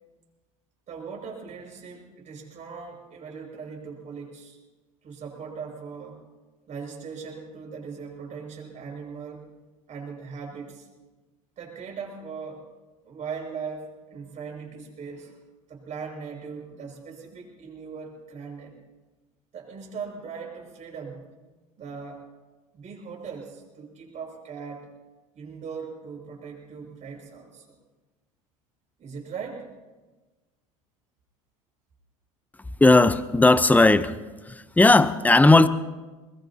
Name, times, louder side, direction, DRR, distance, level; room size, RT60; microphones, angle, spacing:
voice 1, 0.9-4.6 5.0-6.2 6.7-9.5 9.9-10.9 11.6-12.7 13.0-15.4 15.7-18.8 19.5-21.2 21.8-22.3 22.7-24.9 25.3-27.8 29.0-29.7, right 5 dB, 45° right, 0 dB, 6.4 m, -39 dB
voice 2, 32.8-34.2 34.5-35.7, left 2 dB, 10° left, 14 dB, 0.8 m, -16 dB
23.0 x 20.5 x 2.9 m, 1.2 s
hypercardioid pair, 75°, 17 cm